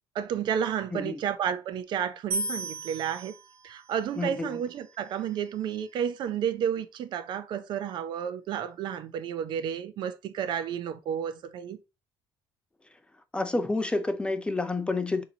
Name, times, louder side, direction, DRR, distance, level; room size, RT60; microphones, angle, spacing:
voice 1, 0.1-3.3 3.6-11.8, right 8 dB, 60° right, 0.5 m, -31 dB
voice 2, 0.9-1.2 4.2-4.6 12.9-13.0 13.3-15.2, left 3 dB, 10° left, 0.4 m, -29 dB
sound 1, 2.3-5.5, right 2 dB, 80° right, 1.1 m, -37 dB
7.0 x 2.8 x 2.8 m
cardioid pair, 130°, 9 cm